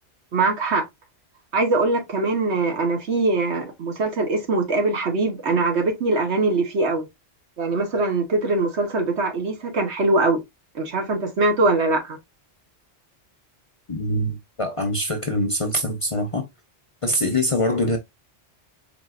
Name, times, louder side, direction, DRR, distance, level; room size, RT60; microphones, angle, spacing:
voice 1, 0.3-0.8 1.5-7.1 7.6-10.4 10.7-12.2, right 3 dB, 75° right, 1.4 m, -22 dB
voice 2, 13.9-16.5 17.0-18.0, left 1 dB, 35° left, 0.6 m, -24 dB
4.4 x 3.5 x 2.4 m
omnidirectional pair, 1.2 m